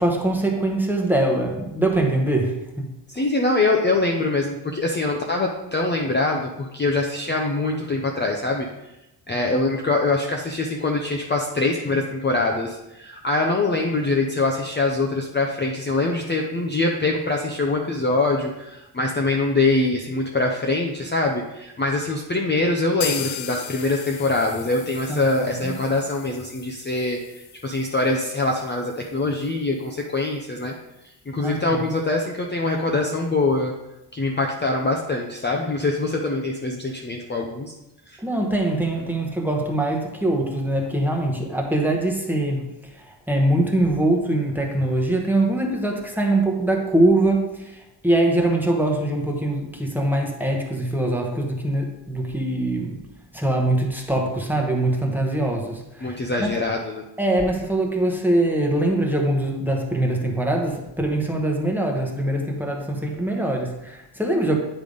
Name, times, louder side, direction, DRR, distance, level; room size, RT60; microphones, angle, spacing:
voice 1, 0.0-2.9 25.1-25.8 31.4-31.8 38.2-42.7 43.0-53.0 53.3-56.7 57.2-64.6, right 1 dB, 5° right, 0 dB, 1.0 m, -23 dB
voice 2, 3.1-8.7 9.3-30.7 31.3-33.7 34.1-37.7 38.1-38.2 56.0-57.0, left 2 dB, 25° left, 0 dB, 0.6 m, -23 dB
sound 1, 23.0-30.7 31.0-31.1 31.4-31.5 32.0-32.1, left 11 dB, 90° left, 0.6 m, -38 dB
9.4 x 3.4 x 5.1 m, 0.92 s
wide cardioid pair, 145°, 45 cm